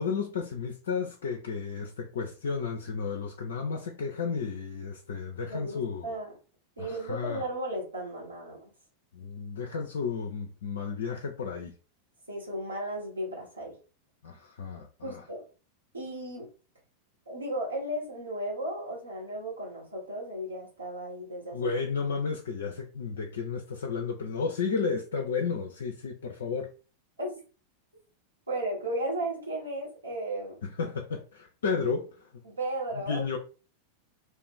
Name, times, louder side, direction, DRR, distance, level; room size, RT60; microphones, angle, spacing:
voice 1, 0.0-6.1 6.8-7.4 9.1-11.8 14.2-15.2 21.5-26.7 30.6-32.3 32.9-33.4, left 5 dB, 65° left, 0.4 m, -33 dB
voice 2, 5.5-6.3 6.8-8.7 12.3-13.8 15.0-15.4 15.9-16.5 17.2-21.7 27.2-27.4 28.5-30.6 32.4-33.4, right 1 dB, 80° right, 1.3 m, -35 dB
2.5 x 2.4 x 3.6 m
figure-of-eight pair, 90°, 0 cm